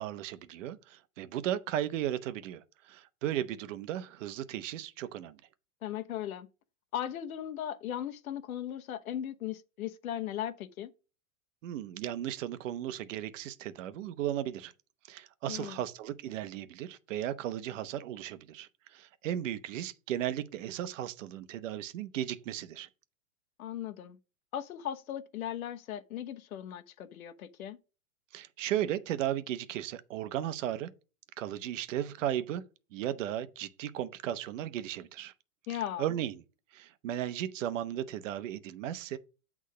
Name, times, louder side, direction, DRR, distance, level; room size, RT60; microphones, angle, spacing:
voice 1, 0.0-5.4 11.6-14.7 15.1-22.9 28.3-30.9 31.4-32.6 32.9-35.3 35.7-36.4 36.7-39.2, right 11 dB, 65° right, 0.9 m, -35 dB
voice 2, 5.8-6.5 6.9-10.9 15.5-15.8 23.6-24.2 24.5-27.8 35.7-36.1, left 11 dB, 90° left, 1.0 m, -37 dB
8.5 x 3.6 x 4.9 m
supercardioid pair, 150°, 41 cm